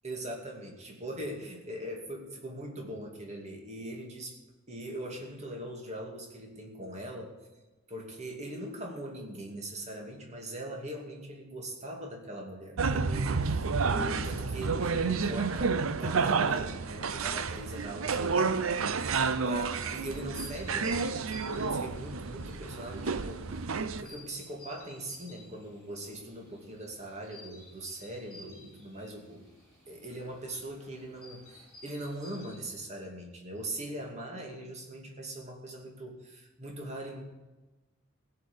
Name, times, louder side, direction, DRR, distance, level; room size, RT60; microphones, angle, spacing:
voice 1, 0.0-4.4 4.7-7.4 7.9-18.7 19.4-23.7 24.0-29.5 29.9-37.2, right 1 dB, 35° right, 0 dB, 2.7 m, -41 dB
sound 1, 12.8-24.0, right 4 dB, 80° right, 0.7 m, -30 dB
sound 2, 19.7-32.7, left 1 dB, ahead, 5.8 m, -54 dB
16.5 x 5.9 x 8.6 m, 1.1 s
head